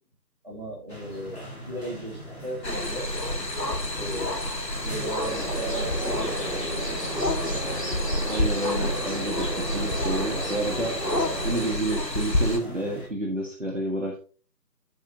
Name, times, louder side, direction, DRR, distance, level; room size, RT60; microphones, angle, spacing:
voice 1, 0.4-3.1 4.0-4.4 4.8-7.2, right 1 dB, 25° right, -3 dB, 2.7 m, -37 dB
sound 1, 0.9-13.1, left 1 dB, 40° left, 4.9 m, -42 dB
sound 2, 2.6-12.6, left 1 dB, 85° left, 2.0 m, -29 dB
sound 3, 5.2-11.7, right 1 dB, 20° left, 3.5 m, -34 dB
voice 2, 8.2-11.0 11.4-14.2, right 1 dB, 45° right, 0 dB, 1.7 m, -30 dB
8.9 x 8.5 x 2.9 m, 0.38 s
figure-of-eight pair, 170°, 50 cm